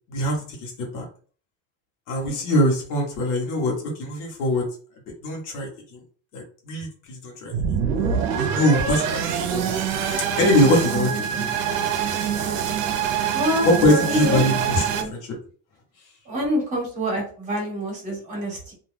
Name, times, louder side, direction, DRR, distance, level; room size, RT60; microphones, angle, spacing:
voice 1, 0.1-1.1 2.1-4.6 5.2-6.0 6.3-7.5 8.4-11.5 13.6-15.2, left 1 dB, 55° left, -1 dB, 1.0 m, -23 dB
voice 2, 2.2-2.6 13.3-14.5 14.9-15.1 16.3-18.7, equal, 20° right, -2 dB, 0.9 m, -27 dB
sound 1, 7.5-15.0, right 7 dB, 60° right, 0.6 m, -25 dB
2.3 x 2.3 x 3.2 m, 0.42 s
cardioid pair, 180°, 33 cm